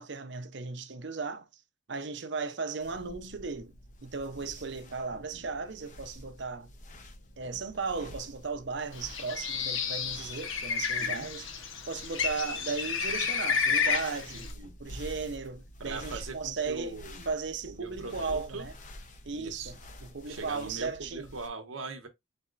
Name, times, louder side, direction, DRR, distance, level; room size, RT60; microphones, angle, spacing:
voice 1, 0.0-1.4 1.9-3.7 4.0-6.7 7.4-11.5 11.9-14.5 14.8-17.0 17.3-18.7 19.3-21.3, right 4 dB, 55° right, 0.7 m, -36 dB
sound 1, 2.8-21.5, left 1 dB, 40° left, 0.8 m, -49 dB
voice 2, 5.1-5.5 11.0-11.3 14.3-14.7 15.8-17.3 17.7-18.7 19.3-19.7 20.3-22.1, right 3 dB, 85° right, 1.0 m, -41 dB
Bird, 9.0-14.5, left 6 dB, 75° left, 1.0 m, -31 dB
4.2 x 4.2 x 2.5 m
head